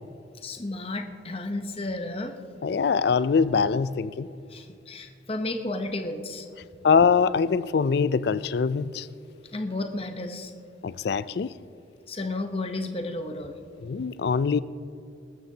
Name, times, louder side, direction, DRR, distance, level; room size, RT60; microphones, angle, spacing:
voice 1, 0.4-2.4 4.5-6.5 9.5-10.5 12.1-13.6, left 2 dB, 30° left, 0.8 m, -32 dB
voice 2, 2.6-4.3 6.8-9.1 10.8-11.5 13.8-14.6, left 5 dB, 55° left, 0.3 m, -23 dB
20.5 x 13.0 x 2.8 m
head